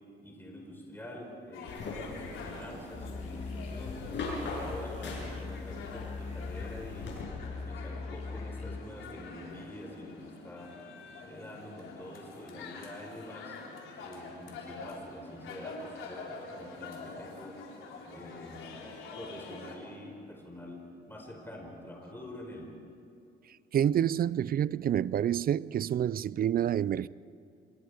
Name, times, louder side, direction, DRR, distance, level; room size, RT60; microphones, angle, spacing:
voice 1, 0.2-4.0 4.5-7.2 7.5-10.7 11.2-13.6 13.9-18.7 19.2-20.8 21.1-22.7, left 1 dB, 10° left, 5.0 m, -46 dB
sound 1, 1.5-19.8, left 3 dB, 85° left, 4.0 m, -46 dB
sound 2, 1.7-7.2, left 3 dB, 65° left, 7.4 m, -41 dB
Musical instrument, 2.9-8.8, left 4 dB, 35° left, 1.9 m, -41 dB
voice 2, 23.5-27.1, right 10 dB, 50° right, 0.5 m, -28 dB
27.0 x 22.0 x 5.1 m
cardioid pair, 90°, 20 cm